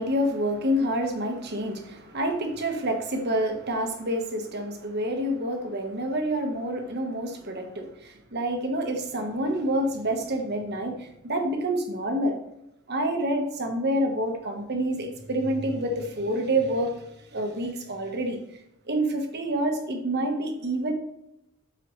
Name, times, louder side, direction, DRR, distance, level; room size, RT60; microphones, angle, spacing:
voice 1, 0.0-12.4 12.9-17.0 17.3-18.4 18.9-20.9, right 1 dB, 50° right, 4 dB, 1.4 m, -28 dB
13.0 x 4.9 x 3.2 m, 0.81 s
head